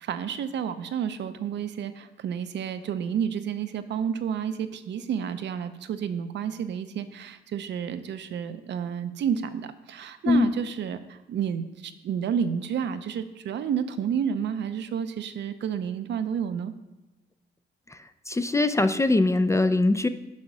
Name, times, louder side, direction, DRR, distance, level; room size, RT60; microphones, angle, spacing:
voice 1, 0.0-16.7, right 8 dB, 65° right, 10 dB, 0.6 m, -30 dB
voice 2, 18.3-20.1, left 2 dB, 15° left, 10 dB, 0.4 m, -21 dB
6.3 x 5.4 x 6.1 m, 1.0 s
cardioid pair, 90°, 20 cm